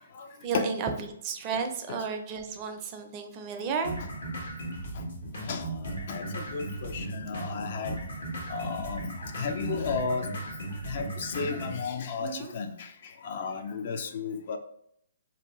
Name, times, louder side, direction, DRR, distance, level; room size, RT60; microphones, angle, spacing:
voice 1, 0.4-4.0 12.2-12.5, right 5 dB, 30° right, 5 dB, 0.4 m, -33 dB
sound 1, 3.8-11.8, right 1 dB, 80° left, 1.1 m, -36 dB
voice 2, 5.5-8.0 8.5-10.3 10.9-12.9 13.2-14.6, left 5 dB, 50° left, 7 dB, 0.3 m, -33 dB
2.6 x 2.3 x 3.0 m, 0.70 s
hypercardioid pair, 140°, 0 cm